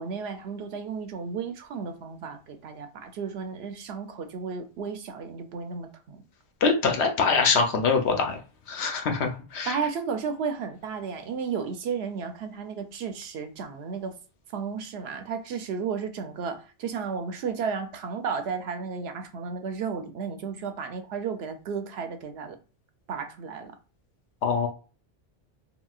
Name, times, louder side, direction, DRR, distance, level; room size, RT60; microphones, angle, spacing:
voice 1, 0.0-6.2 9.7-14.1 14.5-22.6 23.1-23.7, right 6 dB, 75° right, 0.8 m, -33 dB
voice 2, 6.6-8.4 8.7-9.8 24.4-24.7, left 5 dB, 85° left, 0.9 m, -24 dB
3.8 x 2.1 x 2.3 m
omnidirectional pair, 1.1 m